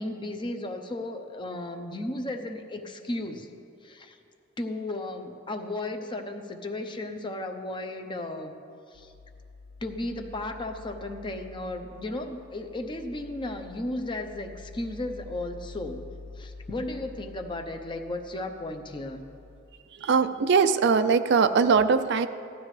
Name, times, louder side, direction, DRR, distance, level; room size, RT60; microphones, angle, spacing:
voice 1, 0.0-3.5 3.8-4.2 4.6-8.5 8.9-9.1 9.8-16.0 16.4-19.2, left 1 dB, 25° left, 5 dB, 0.7 m, -34 dB
sound 1, 8.9-19.6, left 3 dB, 75° left, 0.6 m, -47 dB
voice 2, 20.0-22.3, right 5 dB, 60° right, 11 dB, 0.4 m, -21 dB
16.0 x 12.0 x 3.2 m, 2.4 s
head